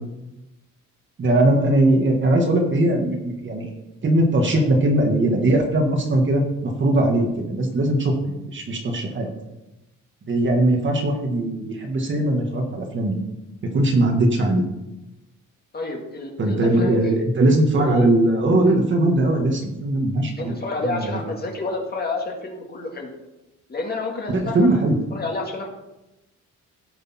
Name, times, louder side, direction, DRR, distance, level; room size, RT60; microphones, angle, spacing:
voice 1, 1.2-3.7 4.0-9.3 10.3-13.2 13.7-14.6 16.4-20.5 20.8-21.2 24.3-24.9, right 1 dB, 35° right, 2 dB, 1.7 m, -20 dB
voice 2, 15.7-17.1 17.5-18.1 20.4-23.1 23.7-24.9 25.1-25.7, left 2 dB, 30° left, 1 dB, 2.0 m, -30 dB
17.0 x 6.6 x 4.3 m, 0.97 s
wide cardioid pair, 160°, 32 cm